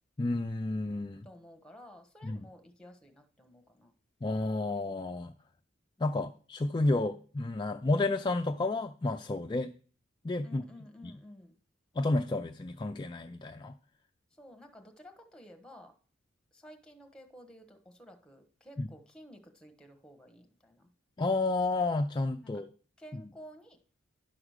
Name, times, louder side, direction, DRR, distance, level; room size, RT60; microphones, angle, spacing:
voice 1, 0.2-1.3 2.2-2.5 4.2-5.3 6.0-9.7 10.2-10.6 11.0-11.1 12.0-13.7 18.8-18.9 21.2-22.7 23.1-23.2, left 2 dB, 25° left, 0.4 m, -31 dB
voice 2, 1.2-3.9 6.0-6.3 10.4-11.6 14.4-15.9 16.5-20.9 22.4-22.6 23.0-23.8, equal, 5° left, 1.1 m, -53 dB
11.0 x 4.9 x 6.4 m
head